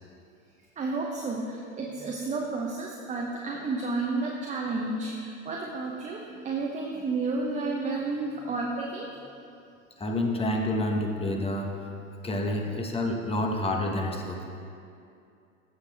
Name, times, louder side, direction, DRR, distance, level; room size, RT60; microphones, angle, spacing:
voice 1, 0.8-1.4 1.8-5.1 5.5-6.2 6.4-9.1 12.7-12.8, right 3 dB, 15° right, -1 dB, 0.8 m, -31 dB
voice 2, 10.0-11.9 12.2-14.5, left 1 dB, 15° left, 1 dB, 1.1 m, -28 dB
14.5 x 6.3 x 3.5 m, 2.5 s
figure-of-eight pair, 90°, 43 cm